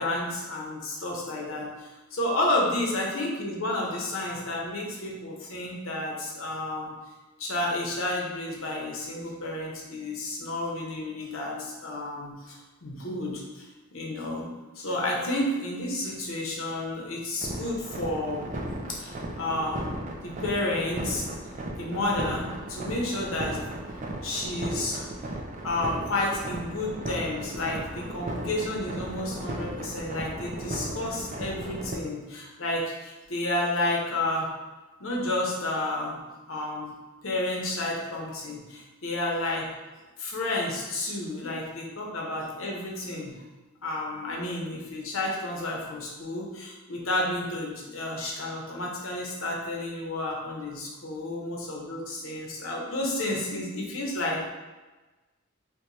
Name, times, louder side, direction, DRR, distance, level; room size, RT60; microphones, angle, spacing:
voice 1, 0.0-6.9 7.4-14.5 14.7-18.5 18.9-19.8 20.2-21.3 21.8-23.6 24.2-25.1 25.6-34.5 35.0-36.2 36.5-36.9 37.2-39.7 40.2-43.3 43.8-54.5, left 1 dB, 85° left, -2 dB, 0.8 m, -31 dB
sound 1, 17.4-32.0, right 1 dB, 40° right, 0.4 m, -35 dB
4.6 x 2.2 x 2.7 m, 1.2 s
head